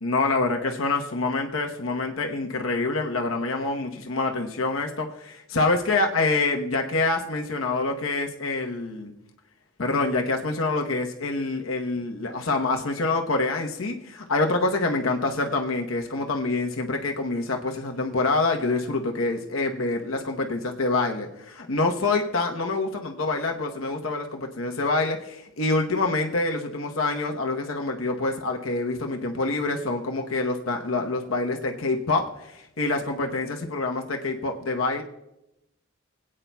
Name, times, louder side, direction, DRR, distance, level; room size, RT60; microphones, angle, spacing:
voice 1, 0.0-9.1 9.8-35.0, left 3 dB, 90° left, 2 dB, 1.0 m, -26 dB
25.0 x 8.8 x 2.3 m, 0.89 s
head